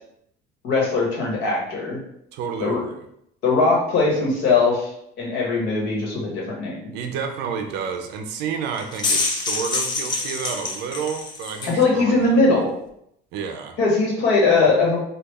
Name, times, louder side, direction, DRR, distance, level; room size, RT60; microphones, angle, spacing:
voice 1, 0.6-2.0 2.6-2.8 3.4-4.9 5.2-6.9 11.7-12.7 13.8-15.0, left 3 dB, 65° left, -3 dB, 1.2 m, -20 dB
voice 2, 2.3-3.0 6.9-12.7 13.3-13.8, right 6 dB, 60° right, 5 dB, 0.5 m, -30 dB
sound 1, 8.7-11.8, left 3 dB, 25° left, 0.3 m, -26 dB
3.1 x 2.3 x 3.4 m, 0.74 s
cardioid pair, 180°, 19 cm